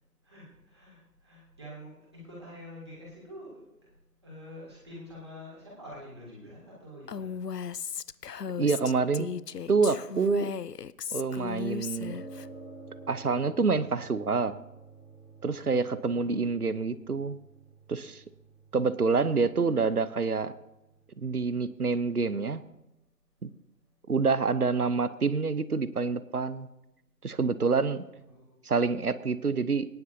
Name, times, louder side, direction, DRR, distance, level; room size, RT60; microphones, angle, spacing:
voice 1, 0.2-3.7 4.2-7.3 16.1-16.4 28.3-28.6, left 1 dB, 15° right, -7 dB, 3.0 m, -47 dB
Female speech woman speaking, 7.1-12.5, left 7 dB, 70° left, 0.6 m, -36 dB
voice 2, 8.6-9.3 9.7-10.5 11.1-12.2 13.1-14.6 15.4-17.4 17.9-18.2 18.7-20.5 21.2-22.6 23.4-23.5 24.1-26.7 27.2-28.0 28.6-29.9, right 4 dB, 65° right, 14 dB, 0.9 m, -27 dB
sound 1, 12.0-21.1, right 2 dB, 50° left, 2.3 m, -50 dB
22.0 x 10.5 x 2.7 m, 0.93 s
figure-of-eight pair, 170°, 49 cm